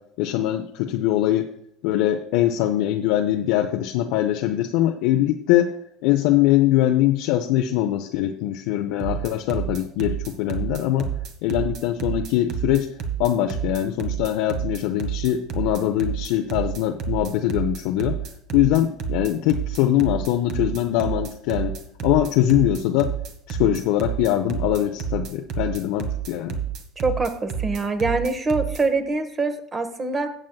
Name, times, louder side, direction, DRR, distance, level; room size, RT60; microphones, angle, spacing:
voice 1, 0.2-1.5 1.8-5.7 6.0-11.1 11.4-12.9 13.2-18.2 18.5-21.7 22.0-23.1 23.5-26.6, left 13 dB, 65° left, 3 dB, 0.6 m, -22 dB
sound 1, 9.0-28.8, right 8 dB, 55° right, 1.4 m, -29 dB
voice 2, 27.0-30.3, right 3 dB, 30° right, 9 dB, 1.3 m, -24 dB
17.5 x 7.4 x 2.3 m, 0.71 s
hypercardioid pair, 70°, 0 cm